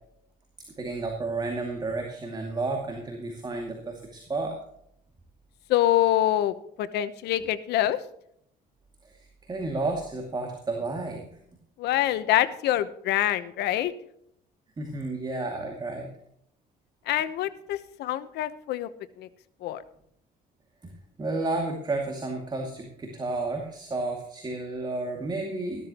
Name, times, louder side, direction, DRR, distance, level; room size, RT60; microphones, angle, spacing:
voice 1, 0.8-4.6 9.0-11.3 14.8-16.1 21.2-25.9, right 2 dB, 25° right, 2 dB, 2.4 m, -31 dB
voice 2, 5.7-8.0 11.8-13.9 17.1-18.9 19.2-19.3 19.6-19.8, left 13 dB, 80° left, 13 dB, 1.0 m, -25 dB
14.0 x 13.5 x 3.0 m, 0.71 s
cardioid pair, 110°, 17 cm